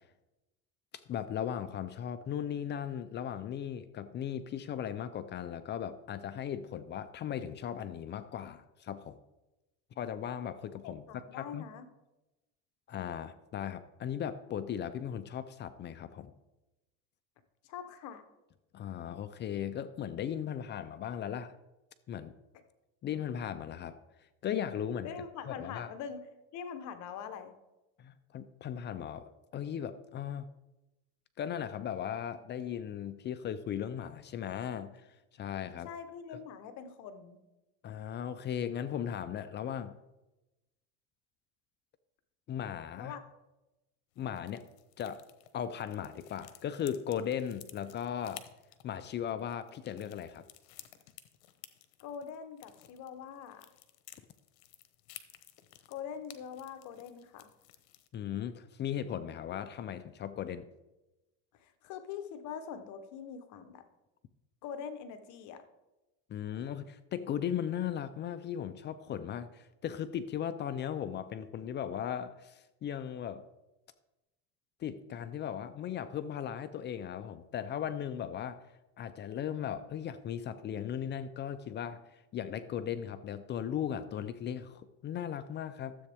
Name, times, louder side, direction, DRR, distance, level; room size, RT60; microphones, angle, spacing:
voice 1, 0.9-9.2 10.0-11.6 12.9-16.3 18.7-21.5 22.1-22.3 23.0-24.0 24.4-25.1 25.5-25.9 28.0-30.5 31.4-35.9 37.8-39.9 42.5-43.1 44.2-44.6 45.0-45.2 45.5-48.5 48.8-50.4 58.1-60.7 66.3-73.5 74.8-78.7 79.0-86.0, left 9 dB, 35° left, 13 dB, 0.5 m, -37 dB
voice 2, 10.8-11.9 17.6-18.3 25.0-26.3 26.5-27.5 35.8-37.4 43.0-43.3 52.0-53.7 55.9-57.5 61.5-63.8 64.6-65.6, left 7 dB, 60° left, 9 dB, 1.0 m, -43 dB
sound 1, 44.1-58.1, left 14 dB, 85° left, 1.0 m, -55 dB
13.0 x 7.8 x 3.5 m, 1.0 s
cardioid pair, 130°, 33 cm